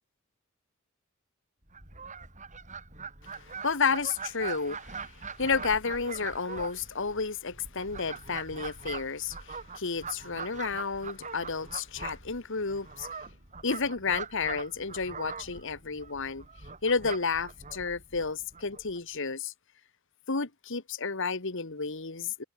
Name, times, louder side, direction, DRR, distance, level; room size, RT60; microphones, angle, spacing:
Fowl, 1.7-19.0, right 5 dB, 35° right, 7.8 m, -42 dB
voice 1, 3.6-5.1 5.4-13.2 13.6-16.4 16.8-19.5 20.3-22.4, left 5 dB, 65° left, 1.6 m, -31 dB
head